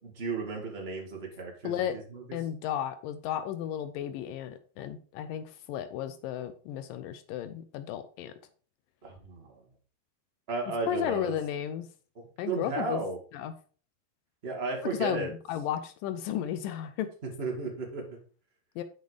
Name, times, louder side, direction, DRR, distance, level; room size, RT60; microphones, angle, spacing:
voice 1, 0.0-2.2 9.0-9.5 10.5-11.3 12.4-13.2 14.4-15.3 17.4-18.2, right 3 dB, 35° right, 1 dB, 1.0 m, -34 dB
voice 2, 1.6-2.0 2.3-8.3 10.9-11.9 12.4-13.0 13.3-13.5 15.0-17.1 18.8-18.9, left 10 dB, 85° left, 10 dB, 1.9 m, -34 dB
6.9 x 6.5 x 4.9 m, 0.40 s
omnidirectional pair, 4.8 m